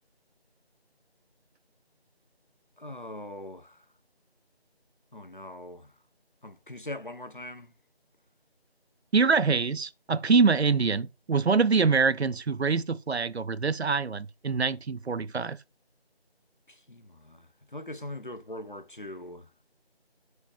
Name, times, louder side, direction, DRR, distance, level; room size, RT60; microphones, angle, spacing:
voice 1, 2.8-3.8 5.1-5.9 6.4-7.7 16.7-19.6, left 1 dB, 50° left, 0.8 m, -41 dB
voice 2, 9.1-15.6, right 5 dB, 75° right, 0.6 m, -25 dB
7.2 x 6.3 x 3.3 m
figure-of-eight pair, 175°, 32 cm